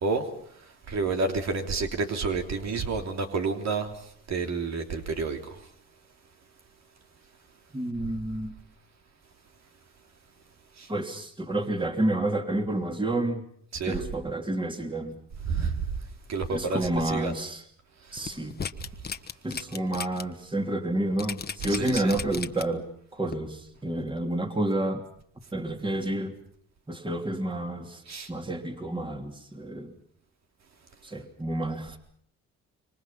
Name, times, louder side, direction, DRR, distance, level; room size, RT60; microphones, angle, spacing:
voice 1, 0.9-3.9 4.3-5.4 10.8-10.9 13.7-14.1 15.4-15.7 16.3-17.3 21.7-22.1 28.1-28.3, right 4 dB, 60° right, 4 dB, 3.2 m, -29 dB
voice 2, 7.7-8.5 10.9-13.4 13.9-15.1 16.5-17.6 18.1-18.5 19.4-22.8 23.1-25.0 25.5-26.3 26.9-28.0 28.3-29.9 31.0-32.0, right 1 dB, 15° right, 5 dB, 2.9 m, -29 dB
sound 1, 18.2-20.2 20.6-20.7 21.2-22.8 23.3-23.4, left 6 dB, 30° left, 1.4 m, -35 dB
27.0 x 24.5 x 5.7 m, 0.63 s
cardioid pair, 90°, 30 cm